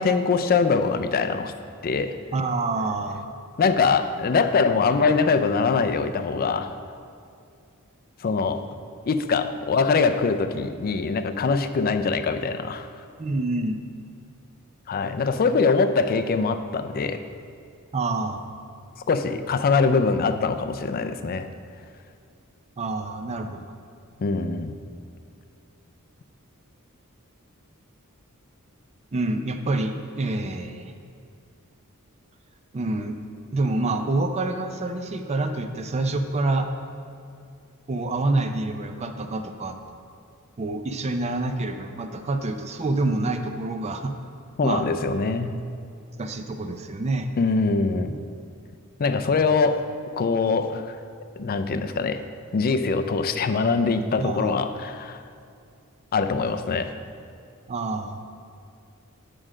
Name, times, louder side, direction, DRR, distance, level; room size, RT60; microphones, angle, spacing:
voice 1, 0.0-1.5 1.8-2.2 3.6-6.7 8.2-8.6 9.1-12.9 14.9-17.2 19.1-21.5 24.2-24.8 44.6-45.6 47.4-48.2 49.0-49.8 50.2-51.0 51.4-52.2 52.5-55.2 56.1-56.9, left 4 dB, 45° left, 9 dB, 0.4 m, -23 dB
voice 2, 2.3-3.3 13.2-13.8 17.9-18.4 22.8-23.7 29.1-30.9 32.7-33.2 33.5-36.7 37.9-39.8 40.6-44.1 44.6-44.9 46.2-47.3 54.2-54.5 57.7-58.2, right 2 dB, 30° right, 7 dB, 0.4 m, -27 dB
7.6 x 5.0 x 6.1 m, 2.4 s
head